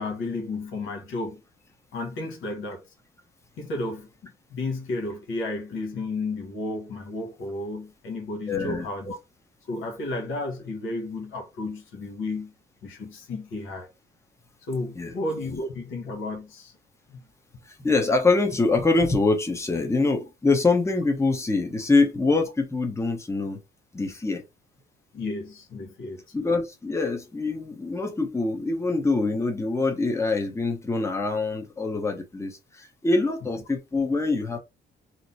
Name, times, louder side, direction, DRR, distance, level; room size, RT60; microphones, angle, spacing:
voice 1, 0.0-1.4 1.9-2.8 3.6-9.2 9.7-12.5 12.8-13.9 14.7-16.7 17.1-17.2 25.1-26.2, left 2 dB, 80° left, 1.2 m, -32 dB
voice 2, 8.5-8.9 14.9-15.1 17.7-23.6 23.9-24.4 26.3-34.6, left 3 dB, 15° left, 0.8 m, -24 dB
2.9 x 2.1 x 4.0 m
cardioid pair, 90°, 20 cm